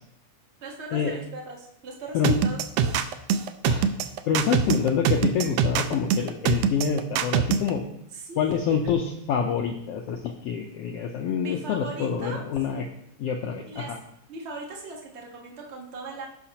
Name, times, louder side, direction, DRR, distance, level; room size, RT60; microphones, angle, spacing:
voice 1, 0.6-3.1 8.1-8.7 11.4-12.4 13.7-14.0 14.3-16.3, right 2 dB, 60° right, 0 dB, 0.6 m, -39 dB
sound 1, 2.2-7.7, right 7 dB, 85° right, 1.4 m, -23 dB
voice 2, 3.7-7.8 8.4-12.9 13.2-14.0, left 7 dB, 80° left, 3 dB, 1.4 m, -27 dB
17.0 x 5.8 x 2.9 m, 0.76 s
omnidirectional pair, 3.5 m